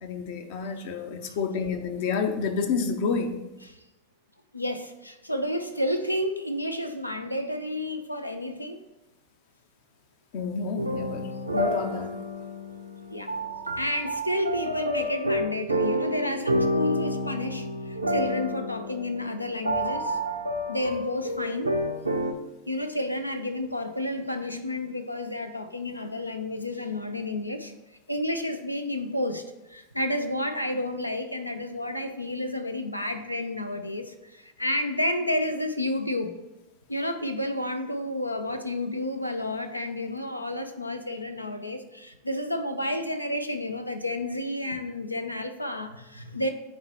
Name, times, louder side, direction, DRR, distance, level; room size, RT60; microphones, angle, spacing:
voice 1, 0.0-3.4 10.3-11.2 11.5-12.1, left 5 dB, 50° left, 6 dB, 0.7 m, -29 dB
voice 2, 4.5-8.8 13.1-13.3 13.8-20.2 20.7-21.7 22.7-27.7 28.1-29.4 29.7-36.3 36.9-46.5, left 1 dB, 90° left, 8 dB, 0.5 m, -30 dB
sound 1, 10.8-22.3, equal, 85° right, 0.6 m, -29 dB
9.7 x 4.3 x 2.9 m, 0.98 s
figure-of-eight pair, 85°, 0 cm